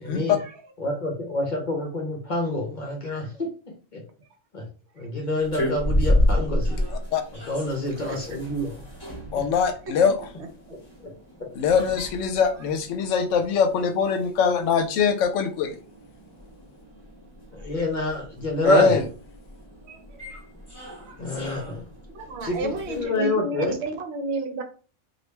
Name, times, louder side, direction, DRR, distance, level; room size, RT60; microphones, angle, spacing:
voice 1, 0.1-0.4 0.8-3.5 3.9-4.0 4.5-4.6 5.0-6.9 7.5-8.8 11.0-11.1 17.5-19.0 21.2-21.8 22.4-23.7, left 1 dB, 45° left, 1 dB, 0.7 m, -27 dB
sound 1, 5.4-23.0, left 1 dB, 20° left, 1.0 m, -31 dB
voice 2, 9.3-10.2 11.6-15.8 18.6-19.0, left 6 dB, 75° left, 8 dB, 0.9 m, -22 dB
voice 3, 22.1-24.6, right 2 dB, 60° right, 5 dB, 0.9 m, -31 dB
3.1 x 2.4 x 3.3 m, 0.37 s
omnidirectional pair, 1.4 m